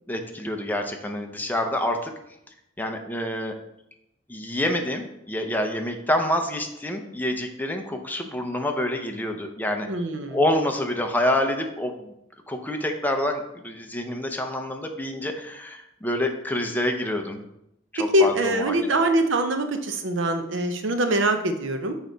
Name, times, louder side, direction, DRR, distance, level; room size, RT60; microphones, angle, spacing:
voice 1, 0.1-2.1 2.8-3.5 4.3-9.9 10.3-12.1 12.5-17.4 18.0-19.0, left 1 dB, 10° left, 3 dB, 0.7 m, -27 dB
voice 2, 9.9-10.4 18.1-21.9, right 1 dB, 70° right, 7 dB, 0.7 m, -23 dB
6.4 x 4.9 x 3.9 m, 0.81 s
head